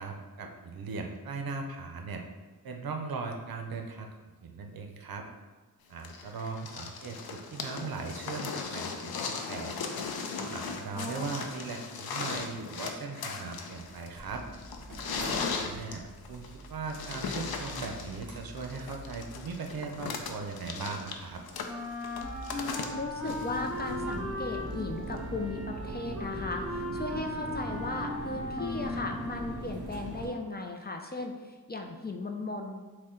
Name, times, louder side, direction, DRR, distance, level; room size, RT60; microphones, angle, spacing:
voice 1, 0.0-2.2 2.6-4.1 4.4-5.3 5.9-9.8 10.4-14.4 15.4-21.4, right 4 dB, 70° right, 3 dB, 0.6 m, -39 dB
sound 1, 6.0-24.1 25.2-25.3, left 5 dB, 75° left, 0.6 m, -38 dB
voice 2, 11.0-11.4 15.3-15.6 22.5-32.9, left 2 dB, 25° left, 3 dB, 0.4 m, -37 dB
Mechanical fan, 14.2-30.2, right 1 dB, 55° right, 1.3 m, -42 dB
Wind instrument woodwind instrument, 21.7-29.8, left 1 dB, ahead, 0.9 m, -38 dB
6.4 x 2.2 x 3.7 m, 1.3 s
wide cardioid pair, 100°, 37 cm